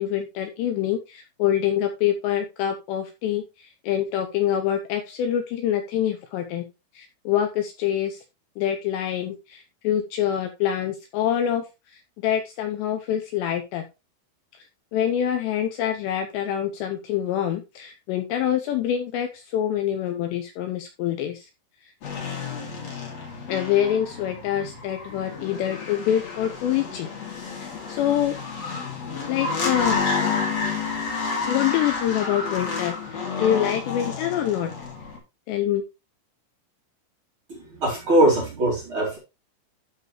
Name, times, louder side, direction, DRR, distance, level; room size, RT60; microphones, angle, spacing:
voice 1, 0.0-6.6 6.9-8.2 8.6-13.8 14.5-14.7 14.9-21.5 23.5-27.1 27.6-28.3 29.3-30.0 31.5-34.9 35.5-35.8, left 10 dB, 80° left, 6 dB, 2.6 m, -26 dB
sound 1, 22.0-35.2, left 4 dB, 45° left, 2.4 m, -30 dB
voice 2, 37.5-39.2, right 1 dB, 35° right, -4 dB, 2.8 m, -21 dB
13.0 x 4.7 x 3.0 m, 0.26 s
omnidirectional pair, 5.7 m